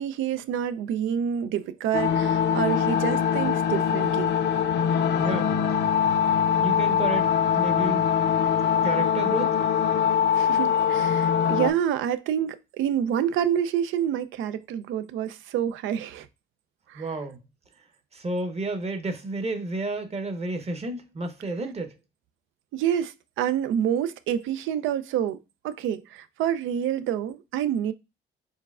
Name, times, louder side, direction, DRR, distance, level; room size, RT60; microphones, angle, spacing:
voice 1, 0.0-4.4 10.3-16.3 16.9-17.1 22.7-25.4 25.6-27.9, right 9 dB, 85° right, 0.4 m, -27 dB
sound 1, 1.9-11.7, left 8 dB, 60° left, 0.4 m, -23 dB
voice 2, 5.2-5.5 6.6-8.0 8.8-9.6 16.9-17.4 18.1-21.9, right 2 dB, 30° right, 0.9 m, -31 dB
4.5 x 3.2 x 2.3 m
cardioid pair, 90°, 20 cm